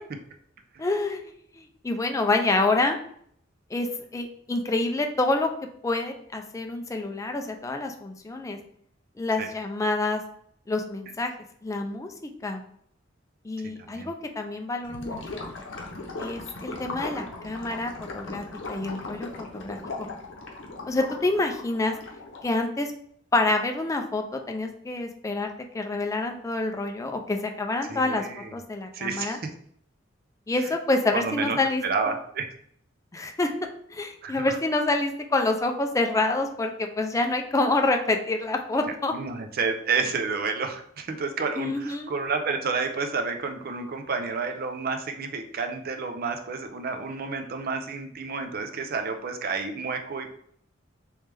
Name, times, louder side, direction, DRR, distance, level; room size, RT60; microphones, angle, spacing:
voice 1, 0.8-3.0 3.7-3.9 4.1-5.5 5.8-8.6 9.2-10.2 10.7-11.3 11.6-12.6 13.4-15.5 16.2-19.8 20.9-21.9 22.4-22.9 23.3-25.5 25.7-29.4 30.5-32.1 33.1-33.5 33.9-39.1 41.6-42.1, left 2 dB, 15° left, 4 dB, 0.4 m, -27 dB
voice 2, 13.8-14.1 27.9-28.5 28.9-29.4 30.6-30.7 31.1-31.6 31.8-32.5 34.2-34.5 39.1-50.3, right 4 dB, 50° right, 6 dB, 0.5 m, -30 dB
Gurgling / Liquid, 14.8-22.6, left 2 dB, 70° left, 0.7 m, -38 dB
3.2 x 3.1 x 3.3 m, 0.65 s
head